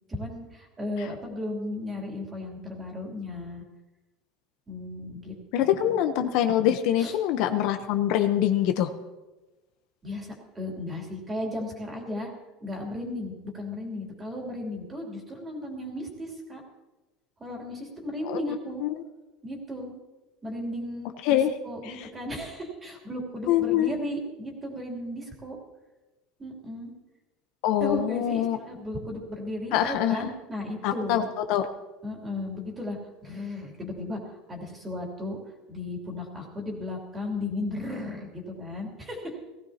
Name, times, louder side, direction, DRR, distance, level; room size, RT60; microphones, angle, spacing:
voice 1, 0.1-3.6 4.7-5.3 5.6-6.0 7.0-7.1 10.0-12.3 12.6-16.6 17.4-18.8 19.4-19.9 20.4-25.6 26.4-26.9 27.8-31.3 32.0-33.0 33.2-35.4 35.7-39.4, left 1 dB, 15° right, 0 dB, 3.0 m, -35 dB
voice 2, 5.5-8.9 18.3-18.4 18.8-18.9 21.2-21.5 22.0-22.1 23.5-23.9 27.6-28.6 29.7-30.3 30.8-31.2 31.5-31.7, left 11 dB, 60° left, 8 dB, 0.9 m, -24 dB
18.5 x 15.5 x 2.9 m, 1.1 s
cardioid pair, 155°, 0 cm